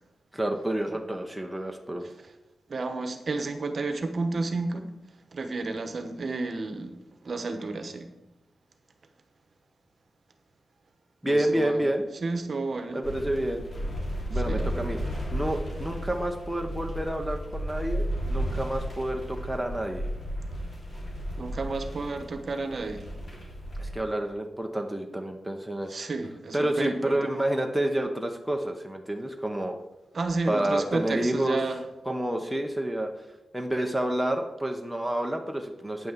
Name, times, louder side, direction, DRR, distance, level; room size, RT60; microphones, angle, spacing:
voice 1, 0.3-2.0 11.2-12.1 12.9-13.7 14.3-15.0 15.3-20.1 23.8-26.0 26.5-29.8 30.5-31.6 32.1-33.1 33.5-36.1, right 1 dB, 5° right, 2 dB, 0.8 m, -29 dB
voice 2, 2.7-4.9 5.3-7.0 7.2-8.1 11.2-11.8 12.2-13.0 14.3-14.7 21.4-23.1 25.9-27.2 30.1-31.8, right 3 dB, 45° right, 7 dB, 1.1 m, -31 dB
sound 1, 13.0-23.9, equal, 40° left, 2.9 m, -33 dB
9.1 x 6.2 x 7.3 m, 0.96 s
wide cardioid pair, 140°, 0 cm